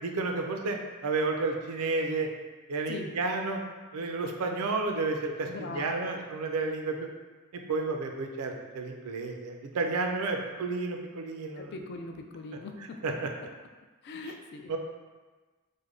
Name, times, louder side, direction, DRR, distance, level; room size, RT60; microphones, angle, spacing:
voice 1, 0.0-2.3 2.7-3.6 3.9-7.1 7.7-11.7 13.0-13.1 14.7-14.8, right 3 dB, 80° right, 3 dB, 0.4 m, -31 dB
voice 2, 5.4-6.2 10.3-10.4 11.6-13.0 14.0-14.7, left 3 dB, 50° left, 4 dB, 0.3 m, -41 dB
3.3 x 2.1 x 3.6 m, 1.3 s
head